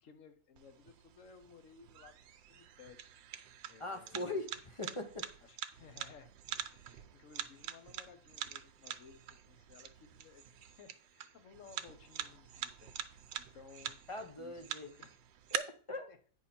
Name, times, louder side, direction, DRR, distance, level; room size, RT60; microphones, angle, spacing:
voice 1, 0.0-3.0 3.7-4.3 5.4-6.3 6.7-9.2 9.5-14.0 14.4-15.2 16.1-16.2, left 6 dB, 50° left, 8 dB, 1.3 m, -58 dB
sound 1, 0.6-15.6, right 11 dB, 80° right, 1.3 m, -46 dB
voice 2, 3.8-5.3 14.1-14.9 15.5-16.1, left 2 dB, 30° left, 6 dB, 0.5 m, -41 dB
8.8 x 5.7 x 4.3 m, 0.42 s
omnidirectional pair, 2.0 m